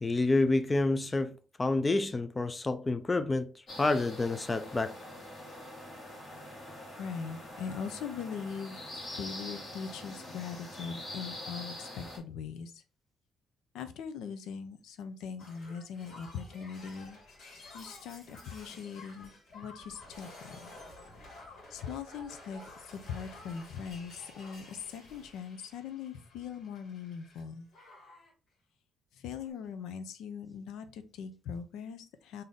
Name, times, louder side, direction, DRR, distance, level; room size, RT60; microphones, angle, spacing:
voice 1, 0.0-3.5 3.8-5.0, left 2 dB, 25° left, 0.4 m, -28 dB
sound 1, 3.7-12.2, left 1 dB, 45° left, 2.1 m, -44 dB
voice 2, 7.0-12.8 13.7-17.2 17.7-20.7 21.7-27.7 29.1-32.4, left 6 dB, 85° left, 0.5 m, -41 dB
Shatter, 15.4-27.4 27.7-28.3 29.4-29.5, left 2 dB, 70° left, 1.8 m, -52 dB
3.8 x 2.7 x 3.4 m
cardioid pair, 90°, 0 cm